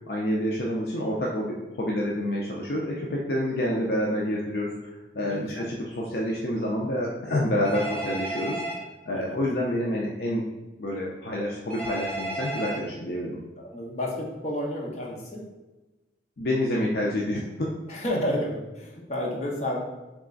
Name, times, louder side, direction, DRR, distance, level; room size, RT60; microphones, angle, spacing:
voice 1, 0.1-4.7 5.1-8.6 9.1-10.5 10.8-13.4 16.4-17.7, left 1 dB, 60° left, -2 dB, 0.5 m, -28 dB
voice 2, 5.2-5.6 9.1-9.4 13.6-15.4 17.9-19.8, left 1 dB, 40° left, -2 dB, 0.9 m, -31 dB
Telephone, 7.6-8.8 11.7-12.8, right 1 dB, 5° left, 1.0 m, -32 dB
3.5 x 3.2 x 3.8 m, 1.1 s
head